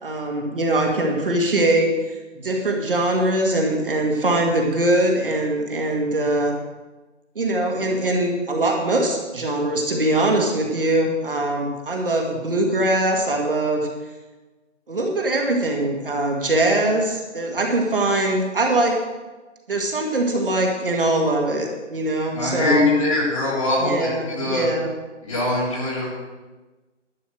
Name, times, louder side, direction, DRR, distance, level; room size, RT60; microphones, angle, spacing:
voice 1, 0.0-1.9 2.4-6.6 7.4-13.9 14.9-19.0 19.7-22.9 23.8-24.9, right 1 dB, 45° right, 1 dB, 1.9 m, -22 dB
voice 2, 22.3-24.7 25.2-26.1, left 2 dB, 25° left, -6 dB, 3.7 m, -22 dB
11.5 x 9.4 x 6.4 m, 1.2 s
hypercardioid pair, 175°, 37 cm